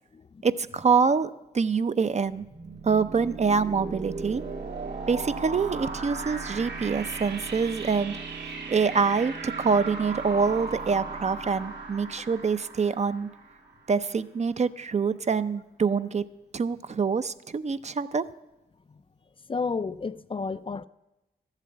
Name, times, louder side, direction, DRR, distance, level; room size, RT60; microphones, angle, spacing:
voice 1, 0.4-1.3 1.5-2.5 2.8-4.4 5.1-8.2 8.7-13.3 13.9-16.2 16.5-18.2, right 5 dB, 40° right, 0.6 m, -25 dB
sound 1, 2.2-13.9, right 4 dB, 80° right, 2.4 m, -37 dB
voice 2, 19.5-20.8, left 4 dB, 30° left, 0.4 m, -31 dB
13.0 x 7.5 x 8.6 m
cardioid pair, 65°, 17 cm